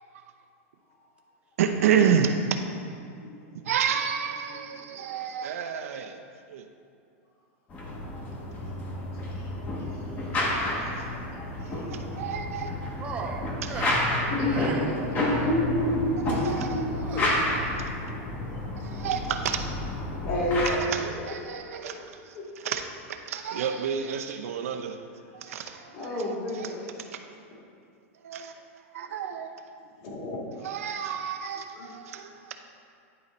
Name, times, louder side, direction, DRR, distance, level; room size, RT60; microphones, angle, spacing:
voice 1, 1.6-2.6 3.6-6.2 6.5-6.6 11.6-12.8 16.3-16.8 17.1-17.3 18.8-19.7 20.7-22.4 22.6-22.9 23.3-25.0 25.3-26.1 26.5-26.7 28.2-28.7 28.9-29.5 30.6-32.6, right 7 dB, 80° right, 5 dB, 0.7 m, -30 dB
voice 2, 3.1-3.4 4.5-5.1 7.8-12.2 13.0-13.1 14.3-17.3 18.0-18.4 20.2-21.1 21.4-22.0 22.3-22.4 25.9-27.1 30.0-30.7 31.7-31.9, left 1 dB, 40° left, -3 dB, 1.8 m, -32 dB
sound 1, 7.7-20.7, left 1 dB, 20° left, 0.9 m, -30 dB
voice 3, 13.0-14.9 17.0-17.7, right 5 dB, 15° right, 2 dB, 0.4 m, -38 dB
10.0 x 3.9 x 4.2 m, 2.3 s
supercardioid pair, 160°, 8 cm